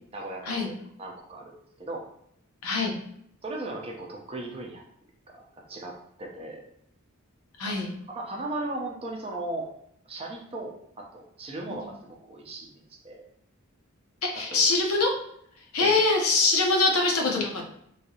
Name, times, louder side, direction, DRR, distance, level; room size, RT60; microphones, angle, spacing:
voice 1, 0.1-2.0 3.4-4.8 5.3-6.6 7.6-7.7 8.1-9.7 10.1-13.3 14.5-14.7 15.8-16.0, right 2 dB, 25° right, 0 dB, 0.5 m, -37 dB
voice 2, 2.6-2.9 7.6-7.9 14.2-15.2 15.7-17.6, left 3 dB, 85° left, 1 dB, 0.7 m, -23 dB
3.1 x 2.8 x 2.7 m, 0.70 s
head